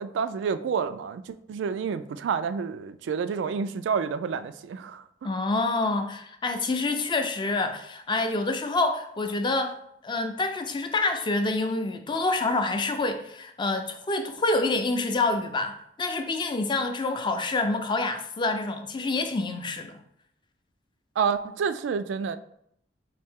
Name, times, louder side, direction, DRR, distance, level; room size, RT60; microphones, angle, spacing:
voice 1, 0.0-5.0 21.2-22.4, right 6 dB, 90° right, 11 dB, 0.3 m, -29 dB
voice 2, 5.2-9.8 10.0-20.0, left 3 dB, 25° left, 6 dB, 0.4 m, -27 dB
4.3 x 2.7 x 3.5 m, 0.71 s
head